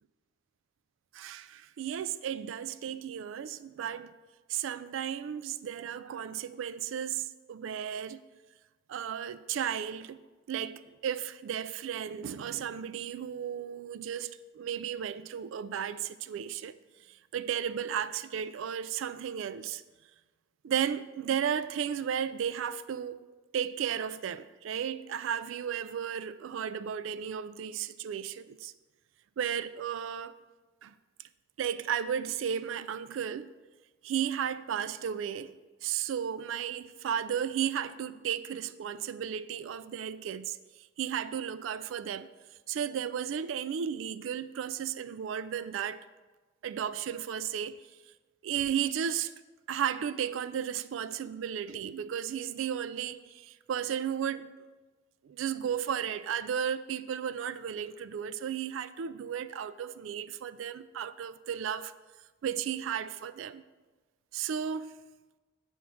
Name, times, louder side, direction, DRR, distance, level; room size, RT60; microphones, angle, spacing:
voice 1, 1.1-4.1 4.5-8.2 8.9-10.2 10.5-16.8 17.1-19.8 20.6-23.2 23.5-28.7 29.4-30.4 30.8-30.9 31.6-33.5 34.0-35.5 35.8-42.3 42.7-46.0 46.6-47.8 48.4-49.3 49.7-54.5 55.2-61.9 62.4-63.6 64.3-65.0, right 8 dB, 80° right, 0.3 m, -34 dB
8.3 x 3.6 x 6.1 m
head